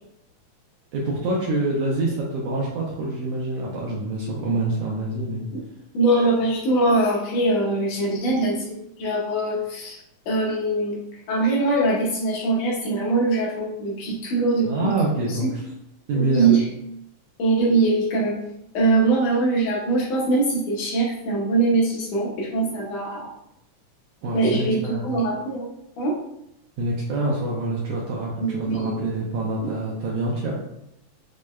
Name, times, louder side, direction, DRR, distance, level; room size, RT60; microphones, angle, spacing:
voice 1, 0.9-5.4 14.6-15.6 16.1-16.5 24.2-25.1 26.8-30.6, right 2 dB, 80° right, -3 dB, 1.5 m, -26 dB
voice 2, 5.9-10.0 10.3-14.9 15.2-15.5 16.1-16.7 17.4-18.4 18.7-23.3 24.3-25.7 26.0-26.2 28.4-29.1 29.6-29.7, right 2 dB, 75° left, -3 dB, 1.7 m, -22 dB
6.1 x 2.1 x 2.3 m, 0.82 s
omnidirectional pair, 3.3 m